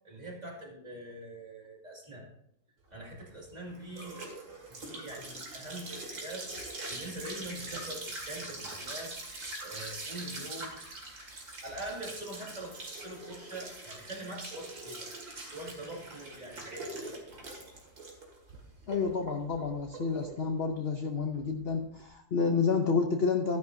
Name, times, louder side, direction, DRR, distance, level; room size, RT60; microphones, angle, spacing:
voice 1, 0.0-2.3 2.9-4.2 4.8-6.5 6.9-9.2 9.6-10.8 11.6-15.1 15.4-17.2, right 1 dB, 20° right, -2 dB, 2.2 m, -43 dB
sound 1, 2.9-22.0, right 2 dB, 55° right, 2.7 m, -43 dB
voice 2, 18.9-23.6, left 5 dB, 60° left, 4 dB, 0.6 m, -29 dB
13.0 x 11.0 x 2.7 m, 0.73 s
omnidirectional pair, 2.0 m